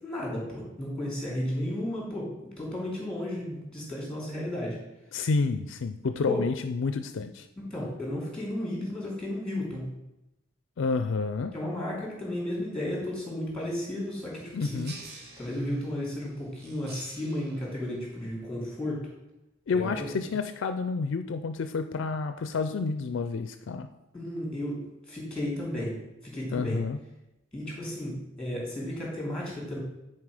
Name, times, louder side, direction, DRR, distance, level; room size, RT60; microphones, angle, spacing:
voice 1, 0.0-4.8 6.3-6.4 7.7-9.9 11.5-14.7 15.4-19.0 19.7-20.1 24.1-24.8 25.1-25.9 26.2-26.8 27.5-29.8, left 1 dB, 5° left, -3 dB, 2.8 m, -33 dB
voice 2, 5.1-7.5 10.8-11.5 14.5-14.9 19.7-23.9 26.5-27.0, left 4 dB, 60° left, 9 dB, 0.4 m, -29 dB
sound 1, 13.6-18.6, right 3 dB, 55° right, 1.1 m, -50 dB
9.5 x 4.5 x 4.9 m, 0.92 s
head